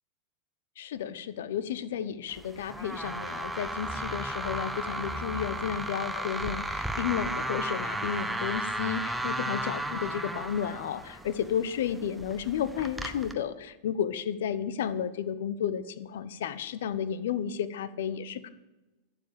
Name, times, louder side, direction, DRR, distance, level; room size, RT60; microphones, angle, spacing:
voice 1, 0.8-18.5, left 8 dB, 75° left, 15 dB, 0.9 m, -32 dB
sound 1, 2.3-13.3, right 1 dB, 5° right, 1.1 m, -34 dB
12.0 x 7.3 x 8.7 m, 1.0 s
hypercardioid pair, 110°, 0 cm